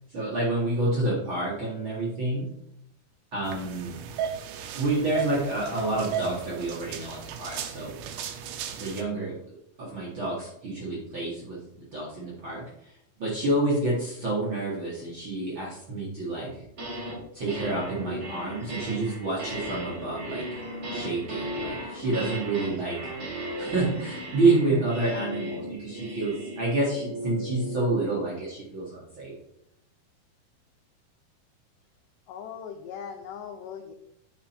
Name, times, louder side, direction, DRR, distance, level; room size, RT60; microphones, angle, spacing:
voice 1, 0.1-2.5 3.3-4.0 4.7-8.0 8.8-12.9 13.2-16.5 17.3-20.4 20.9-23.0 23.6-29.3, right 2 dB, 55° right, -5 dB, 1.4 m, -28 dB
sound 1, 3.4-9.0, right 8 dB, 80° right, 2.0 m, -35 dB
sound 2, 16.5-17.2 17.5-27.9, equal, 35° right, 2.0 m, -36 dB
voice 2, 32.3-33.9, left 7 dB, 85° left, 5 dB, 1.8 m, -39 dB
8.6 x 4.4 x 4.3 m, 0.77 s
omnidirectional pair, 4.4 m